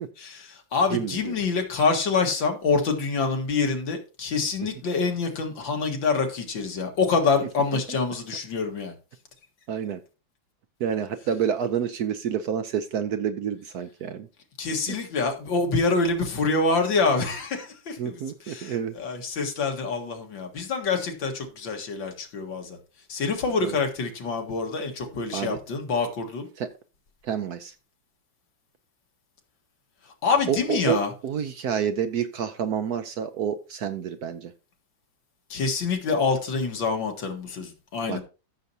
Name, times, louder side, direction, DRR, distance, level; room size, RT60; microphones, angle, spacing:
voice 1, 0.2-8.9 14.6-18.2 18.5-22.8 23.1-26.5 30.2-31.1 35.5-38.2, left 4 dB, 75° left, 2.4 m, -26 dB
voice 2, 0.9-1.3 4.6-4.7 9.7-10.0 10.8-14.3 18.0-18.9 23.6-23.8 25.3-25.6 26.6-26.7 27.2-27.7 30.5-34.5 38.1-38.2, right 8 dB, 65° right, 1.0 m, -28 dB
14.0 x 6.6 x 2.8 m
omnidirectional pair, 2.1 m